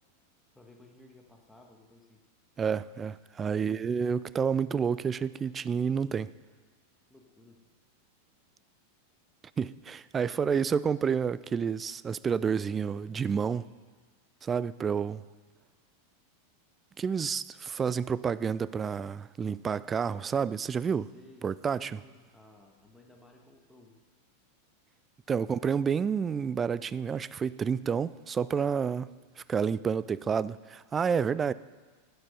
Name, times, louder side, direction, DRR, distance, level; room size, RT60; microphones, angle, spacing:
voice 1, 0.5-2.2 7.1-7.6 21.1-24.0, left 2 dB, 5° left, 1.6 m, -57 dB
voice 2, 2.6-6.3 9.6-13.7 14.4-15.2 17.0-21.1 21.4-22.0 25.3-31.5, right 6 dB, 20° right, 0.3 m, -29 dB
11.5 x 9.9 x 5.4 m
figure-of-eight pair, 90°, 0 cm